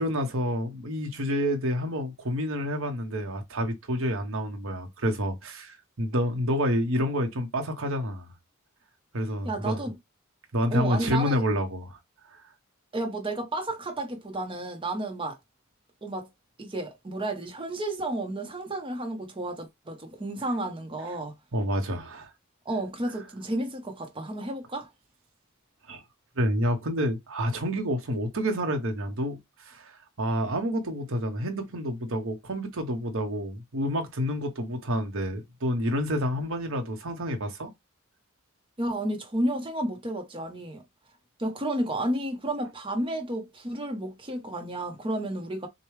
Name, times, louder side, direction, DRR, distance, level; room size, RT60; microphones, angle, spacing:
voice 1, 0.0-8.3 9.1-9.8 10.5-12.0 12.3-12.4 21.5-22.3 25.9-26.0 26.4-37.7, equal, 65° right, 1.0 m, -29 dB
voice 2, 9.4-10.0 10.7-11.4 12.9-15.4 16.0-16.3 16.6-21.4 22.6-24.9 38.8-40.8 41.4-45.7, right 1 dB, 25° right, 0.9 m, -31 dB
6.6 x 2.3 x 3.2 m
head